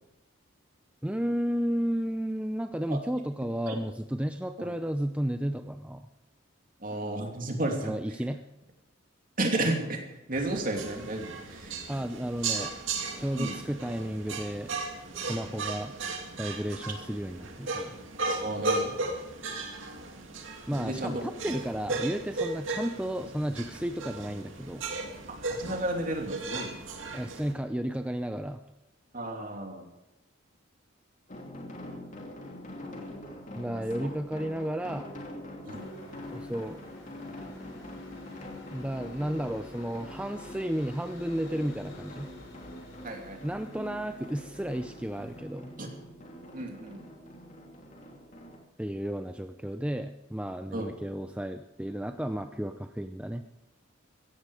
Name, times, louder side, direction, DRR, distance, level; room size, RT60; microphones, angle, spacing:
voice 1, 1.0-6.1 7.8-8.4 11.9-12.8 13.2-14.7 15.1-15.9 16.4-18.0 20.7-24.8 27.1-28.6 33.6-35.1 36.3-36.9 38.7-42.3 43.4-45.7 48.8-53.4, equal, 5° right, 7 dB, 0.5 m, -33 dB
voice 2, 6.8-7.9 9.4-10.0 10.3-11.7 13.3-13.6 18.3-19.0 20.7-21.2 25.5-26.8 29.1-29.9 33.6-34.1 35.6-35.9 43.0-43.4 45.8-45.9 46.5-47.0 50.7-50.9, right 1 dB, 45° right, 2 dB, 2.8 m, -33 dB
sound 1, 10.3-27.5, right 3 dB, 75° right, 2.4 m, -36 dB
sound 2, 31.3-48.6, left 1 dB, 40° left, 2.9 m, -44 dB
sound 3, 35.7-45.4, left 2 dB, 65° left, 4.1 m, -53 dB
16.0 x 15.0 x 4.9 m, 0.95 s
head